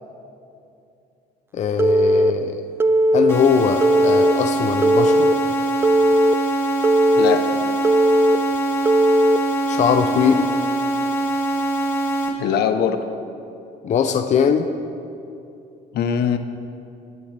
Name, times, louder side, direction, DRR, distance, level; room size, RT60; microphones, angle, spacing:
voice 1, 1.5-2.7 3.1-5.3 9.7-10.5 13.8-14.7, left 7 dB, 45° left, 6 dB, 0.6 m, -20 dB
Telephone, 1.8-2.3 2.8-3.3 3.8-4.3 4.8-5.3 5.8-6.3 6.8-7.4 7.8-8.4 8.9-9.4, right 1 dB, 15° right, 0.4 m, -16 dB
sound 1, 3.3-12.3, right 1 dB, 15° left, 2.2 m, -23 dB
voice 2, 12.4-13.0 15.9-16.4, left 8 dB, 70° left, 8 dB, 1.0 m, -21 dB
21.0 x 12.0 x 3.4 m, 2.7 s
cardioid pair, 110°, 17 cm